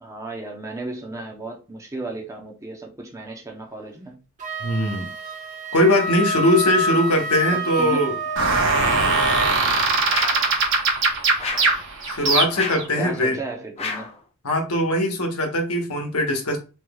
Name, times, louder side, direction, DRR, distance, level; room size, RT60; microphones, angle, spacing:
voice 1, 0.0-4.2 7.5-8.1 13.0-14.1, right 2 dB, 15° right, 0.7 m, -34 dB
Wind instrument woodwind instrument, 4.4-9.6, right 1 dB, 35° right, 1.0 m, -27 dB
voice 2, 4.6-5.1 5.7-8.1 12.0-13.4 14.4-16.6, left 1 dB, 80° left, 1.1 m, -21 dB
sound 1, 8.4-12.8, right 3 dB, 60° right, 0.9 m, -21 dB
sound 2, 10.1-10.5 11.4-11.8 12.5-12.9 13.8-14.2, left 4 dB, 30° left, 0.6 m, -30 dB
3.4 x 3.0 x 2.3 m
head